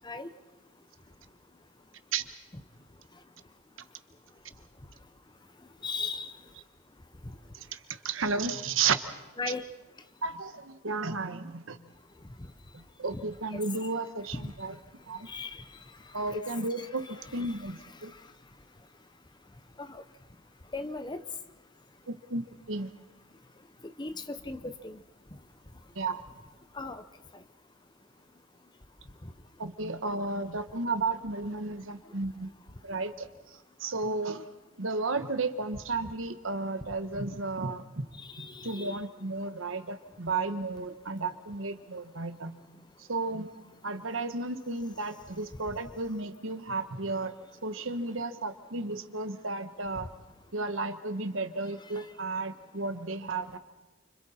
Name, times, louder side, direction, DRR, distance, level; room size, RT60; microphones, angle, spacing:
voice 1, 5.8-6.3 9.4-9.7 13.5-13.6 15.3-15.6 16.3-16.4 16.8-17.5 19.8-20.0 20.7-21.2 23.8-25.0 26.7-27.0 38.3-39.0, left 3 dB, 20° left, 10 dB, 0.8 m, -37 dB
voice 2, 7.5-9.0 10.2-11.8 12.7-14.8 15.1-15.3 16.1-18.1 22.1-22.9 25.9-26.2 29.6-32.5 32.8-34.5 34.8-38.1 38.4-42.5 43.0-43.5 43.8-47.3 47.6-50.1 50.5-53.6, right 3 dB, 70° right, 9 dB, 1.3 m, -33 dB
29.5 x 26.0 x 4.3 m, 1.1 s
head